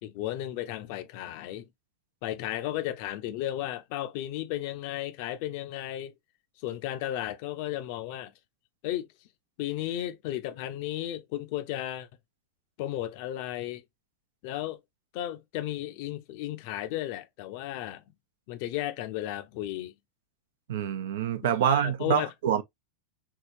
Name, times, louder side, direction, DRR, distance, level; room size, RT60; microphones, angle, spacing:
voice 1, 0.0-1.7 2.2-6.1 6.6-8.3 8.8-9.1 9.6-12.1 12.8-13.8 14.4-14.8 15.1-18.0 18.5-19.9 21.6-22.3, left 13 dB, 45° left, 0.6 m, -34 dB
voice 2, 20.7-22.6, right 9 dB, 60° right, 0.6 m, -26 dB
4.7 x 3.1 x 2.6 m
figure-of-eight pair, 90°, 0 cm